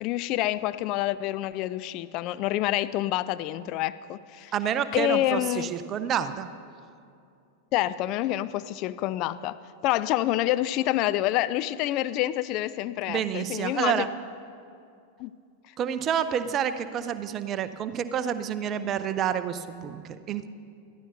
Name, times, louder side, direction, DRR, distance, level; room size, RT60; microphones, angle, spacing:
voice 1, 0.0-4.5 4.9-5.7 7.7-14.0 15.2-15.3, left 14 dB, 40° left, 15 dB, 0.3 m, -27 dB
voice 2, 4.5-6.5 13.1-14.1 15.8-20.5, right 9 dB, 30° right, 12 dB, 0.6 m, -29 dB
20.0 x 13.5 x 2.7 m, 2.4 s
figure-of-eight pair, 90°, 0 cm